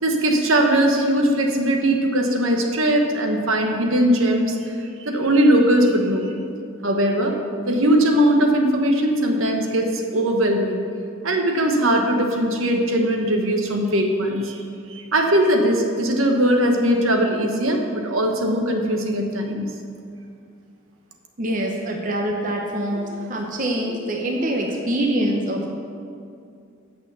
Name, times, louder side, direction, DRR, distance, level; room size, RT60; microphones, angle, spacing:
voice 1, 0.0-6.3 6.8-7.3 7.7-10.8 11.2-14.6 14.9-19.7, right 1 dB, 75° right, 2 dB, 1.2 m, -20 dB
voice 2, 21.4-25.7, right 1 dB, 40° right, 1 dB, 0.8 m, -24 dB
8.8 x 6.5 x 6.9 m, 2.4 s
head